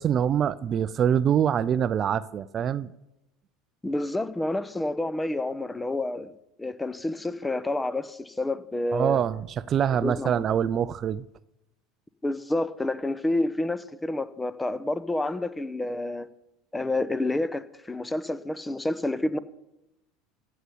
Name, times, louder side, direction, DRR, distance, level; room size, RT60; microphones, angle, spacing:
voice 1, 0.0-2.9 8.9-11.2, right 9 dB, 40° right, 0.4 m, -25 dB
voice 2, 3.8-6.3 6.6-9.2 10.0-10.4 12.2-16.3 16.7-19.4, left 2 dB, 10° left, 0.8 m, -29 dB
15.0 x 5.6 x 8.2 m
hypercardioid pair, 80°, 0 cm